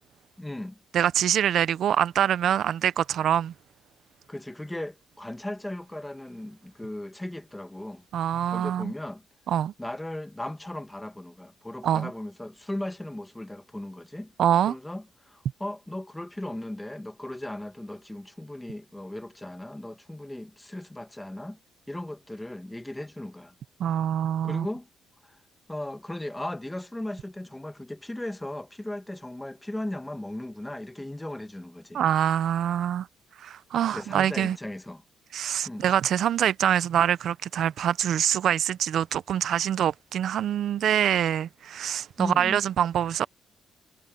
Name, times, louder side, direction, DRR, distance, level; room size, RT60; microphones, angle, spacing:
voice 1, 0.4-0.8 4.3-8.1 8.5-9.2 9.8-14.3 14.7-21.6 21.9-23.5 24.4-24.9 25.2-25.4 25.7-32.0 33.9-35.0 35.6-35.9 42.2-42.6, left 1 dB, 10° left, 1.4 m, -37 dB
voice 2, 0.9-3.5 8.1-8.9 9.5-9.7 11.8-12.1 14.4-14.7 23.8-24.7 31.9-33.1 33.4-34.6 35.3-43.3, right 10 dB, 70° right, 0.7 m, -25 dB
cardioid pair, 90°, 0 cm